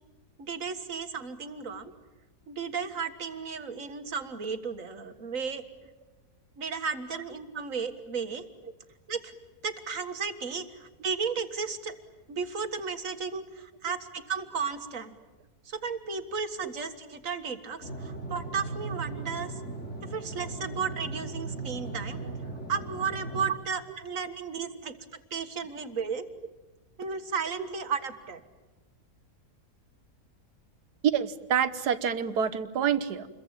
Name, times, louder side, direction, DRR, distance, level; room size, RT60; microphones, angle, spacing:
voice 1, 0.4-1.9 2.5-5.6 6.6-8.5 9.1-9.4 9.6-11.9 12.3-15.2 15.7-19.6 20.1-22.2 22.7-26.3 27.0-28.4, right 5 dB, 55° right, 8 dB, 2.0 m, -34 dB
sound 1, 17.8-23.5, right 3 dB, 45° left, 3.4 m, -37 dB
voice 2, 31.0-33.3, right 8 dB, 85° right, 12 dB, 1.7 m, -27 dB
28.0 x 22.5 x 8.9 m, 1.2 s
omnidirectional pair, 1.7 m